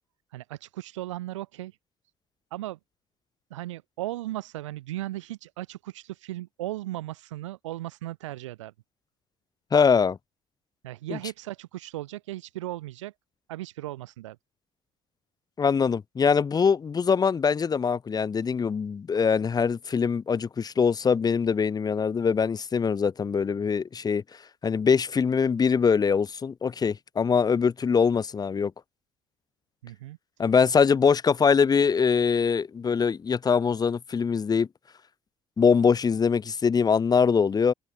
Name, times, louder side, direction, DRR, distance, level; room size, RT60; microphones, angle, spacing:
voice 1, 0.3-1.8 2.5-2.8 3.5-8.7 10.8-13.1 13.5-14.4 29.8-30.5, right 16 dB, 80° right, 1.1 m, -36 dB
voice 2, 9.7-10.2 11.1-11.2 15.6-24.2 24.6-28.7 30.4-34.7 35.6-37.7, left 6 dB, 25° left, 0.5 m, -23 dB
figure-of-eight pair, 50°, 16 cm